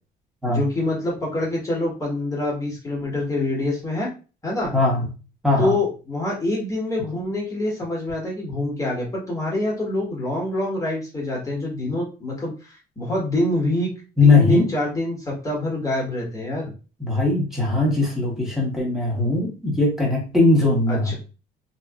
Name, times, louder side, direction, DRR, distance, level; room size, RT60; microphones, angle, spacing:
voice 1, 0.5-4.1 4.4-4.7 5.6-13.9 14.2-16.7 20.9-21.1, left 1 dB, 20° left, -4 dB, 1.4 m, -25 dB
voice 2, 4.7-5.1 5.4-5.8 14.2-14.7 17.0-21.1, left 3 dB, 5° right, -3 dB, 1.4 m, -19 dB
3.0 x 2.8 x 2.4 m, 0.33 s
cardioid pair, 110°, 17 cm